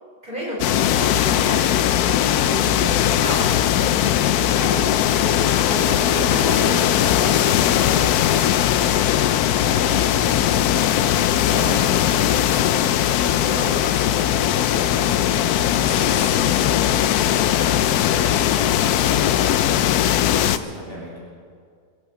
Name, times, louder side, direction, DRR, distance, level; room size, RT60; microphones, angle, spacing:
voice 1, 0.2-3.5 3.8-8.4 15.2-15.5 15.9-16.4, equal, 30° right, -6 dB, 5.6 m, -32 dB
sound 1, 0.6-20.6, left 11 dB, 75° left, 1.1 m, -19 dB
voice 2, 9.7-20.0 20.3-21.2, right 1 dB, 15° left, -7 dB, 3.4 m, -35 dB
23.0 x 8.7 x 7.3 m, 2.1 s
omnidirectional pair, 1.7 m